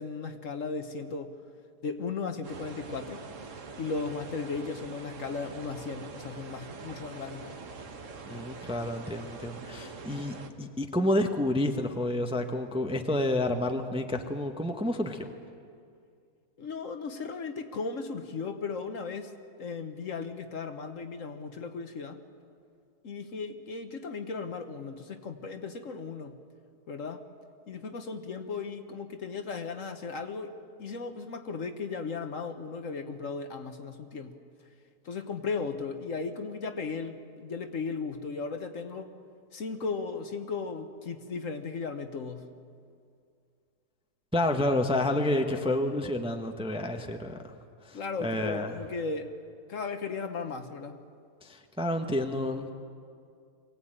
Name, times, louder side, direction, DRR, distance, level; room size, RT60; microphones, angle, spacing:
voice 1, 0.0-1.3 1.8-3.2 3.8-7.6 16.6-22.2 23.0-26.4 26.9-27.2 27.7-34.3 35.0-39.1 39.5-42.5 47.9-49.3 49.7-51.0, left 4 dB, 55° left, 7 dB, 1.4 m, -36 dB
sound 1, 2.4-10.5, right 4 dB, 50° right, 1.6 m, -44 dB
voice 2, 8.3-15.3 44.3-47.5 47.8-48.7 51.4-52.7, left 1 dB, 5° right, 5 dB, 0.9 m, -29 dB
23.5 x 17.0 x 8.9 m, 2.3 s
omnidirectional pair, 1.7 m